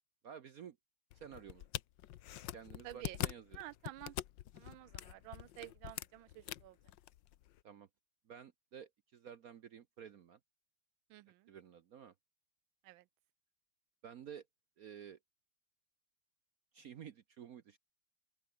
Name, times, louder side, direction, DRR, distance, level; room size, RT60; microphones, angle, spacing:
voice 1, 0.2-0.8 1.1-1.7 2.5-3.6 7.6-7.9 8.3-10.4 11.5-12.1 14.0-14.4 14.8-15.2 16.7-17.8, right 8 dB, 60° right, 1.0 m, -52 dB
sound 1, 1.1-7.6, left 13 dB, 65° left, 1.4 m, -45 dB
voice 2, 2.8-3.2 3.5-4.2 4.5-6.8 11.1-11.5 12.8-13.0, right 16 dB, 75° right, 1.3 m, -51 dB
open air
omnidirectional pair, 2.3 m